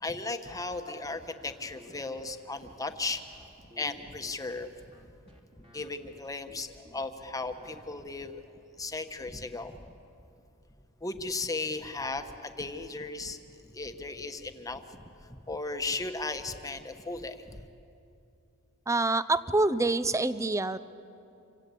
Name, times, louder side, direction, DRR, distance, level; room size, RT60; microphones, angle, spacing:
voice 1, 0.0-3.2 3.8-4.7 5.7-8.4 8.8-9.8 11.0-13.4 13.7-15.0 15.5-17.6, left 3 dB, 15° left, 7 dB, 1.2 m, -36 dB
sound 1, 0.7-8.2, equal, 30° right, 2.8 m, -54 dB
voice 2, 18.9-20.8, right 2 dB, 15° right, 14 dB, 0.6 m, -26 dB
27.5 x 25.5 x 8.4 m, 2.7 s
head